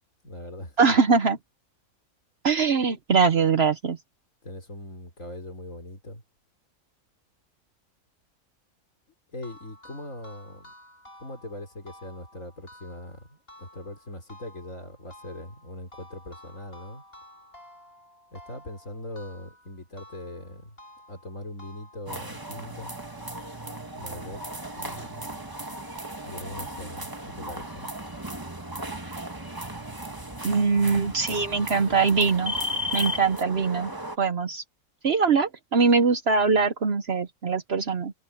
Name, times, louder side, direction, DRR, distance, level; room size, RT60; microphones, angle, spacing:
voice 1, 0.2-1.0 4.4-6.2 9.3-10.7 11.2-17.0 18.3-20.8 21.1-22.9 23.9-25.4 26.2-27.9, left 1 dB, 65° left, 5.3 m, -41 dB
voice 2, 0.8-1.4 2.4-4.0 30.4-32.5 32.9-33.9 34.2-34.6 35.0-38.1, right 5 dB, 50° right, 1.0 m, -22 dB
sound 1, 9.4-22.4, left 1 dB, 40° left, 7.7 m, -52 dB
sound 2, 22.1-34.2, equal, 15° right, 1.5 m, -35 dB
omnidirectional pair, 1.5 m